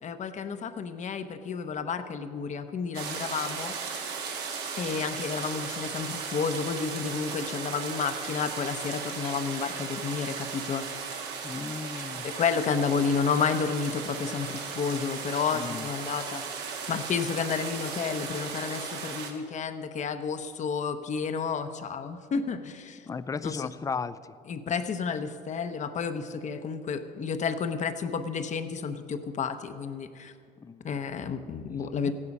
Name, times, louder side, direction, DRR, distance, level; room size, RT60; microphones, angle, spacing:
voice 1, 0.0-3.7 4.8-11.1 11.9-23.1 23.4-23.7 24.5-30.3 30.8-32.1, left 6 dB, 45° left, 9 dB, 0.9 m, -31 dB
sound 1, 2.9-19.3, right 5 dB, 85° right, 1.5 m, -36 dB
voice 2, 11.4-12.3 15.5-15.9 23.0-24.4 30.6-30.9 32.0-32.1, left 5 dB, 20° left, 15 dB, 0.4 m, -35 dB
14.5 x 9.8 x 5.4 m, 2.3 s
cardioid pair, 110°, 17 cm